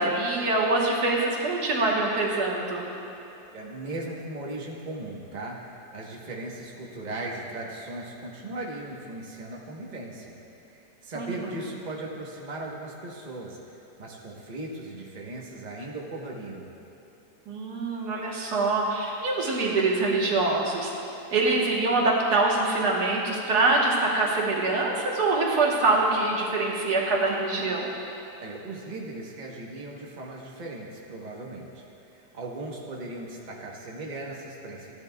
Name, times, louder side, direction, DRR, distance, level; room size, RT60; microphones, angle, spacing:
voice 1, 0.0-2.9 11.2-11.6 17.5-20.9 21.3-28.0, right 2 dB, 85° right, -2 dB, 1.9 m, -24 dB
voice 2, 3.5-10.4 10.7-13.6 14.0-16.7 28.4-31.8 32.1-34.9, right 2 dB, 30° right, -2 dB, 1.2 m, -38 dB
15.5 x 10.5 x 2.4 m, 3.0 s
omnidirectional pair, 1.7 m